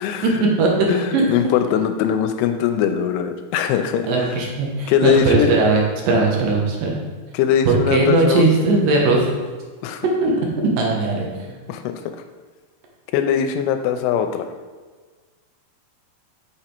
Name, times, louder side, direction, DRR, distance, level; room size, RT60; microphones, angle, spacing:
voice 1, 0.2-1.2 4.1-7.0 7.7-9.3 10.0-10.4 10.8-11.3, right 3 dB, 70° right, 0 dB, 2.4 m, -18 dB
voice 2, 0.9-4.3 4.9-5.6 7.3-8.5 9.8-10.0 11.7-12.0 13.1-14.5, left 8 dB, 90° left, 7 dB, 2.6 m, -21 dB
6.5 x 5.8 x 4.4 m, 1.4 s
omnidirectional pair, 4.6 m